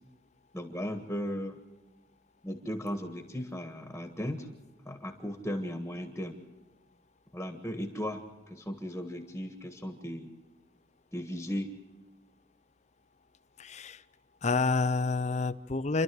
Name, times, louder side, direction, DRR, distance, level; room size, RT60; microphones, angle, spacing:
voice 1, 0.5-1.6 2.4-4.5 4.8-6.4 7.3-10.3 11.1-11.7, equal, 10° left, 5 dB, 1.5 m, -36 dB
voice 2, 13.6-14.0 14.4-16.0, left 3 dB, 35° left, 13 dB, 0.6 m, -28 dB
28.5 x 12.0 x 7.8 m, 1.1 s
head